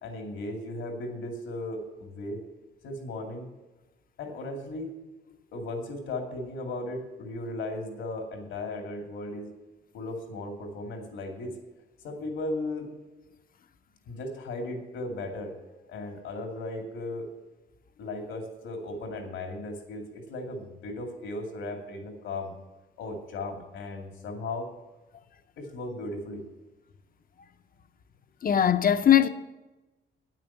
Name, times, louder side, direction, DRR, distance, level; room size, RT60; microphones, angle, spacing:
voice 1, 0.0-2.4 2.8-3.5 4.2-4.9 5.5-9.5 9.9-11.6 12.0-12.9 14.1-15.6 15.9-17.3 18.0-22.5 23.0-24.7 25.6-26.4, left 2 dB, 85° left, 2.4 m, -36 dB
voice 2, 28.4-29.3, left 10 dB, 45° left, 0.8 m, -20 dB
9.3 x 9.1 x 7.2 m
cardioid pair, 90°, 20 cm